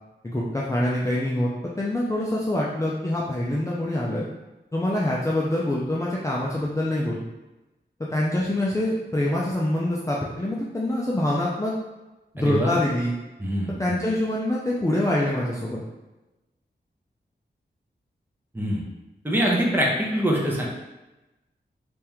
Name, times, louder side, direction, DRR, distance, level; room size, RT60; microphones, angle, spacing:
voice 1, 0.2-1.5 1.8-4.3 4.7-7.2 8.1-11.7 12.3-13.1 13.8-15.8, left 1 dB, 15° left, -5 dB, 0.5 m, -25 dB
voice 2, 12.4-12.7 13.4-14.0 18.5-18.8 19.2-20.7, equal, 10° right, -3 dB, 0.9 m, -24 dB
3.5 x 3.3 x 3.0 m, 1.0 s
wide cardioid pair, 90°, 19 cm